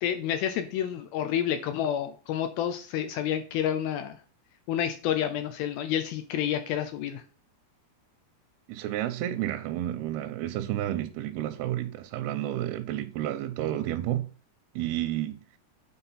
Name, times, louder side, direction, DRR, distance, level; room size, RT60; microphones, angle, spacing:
voice 1, 0.0-4.2 4.7-7.2, left 10 dB, 80° left, 2.2 m, -29 dB
voice 2, 8.7-14.3 14.8-15.4, right 13 dB, 80° right, 2.4 m, -31 dB
9.0 x 4.3 x 5.6 m
omnidirectional pair, 4.9 m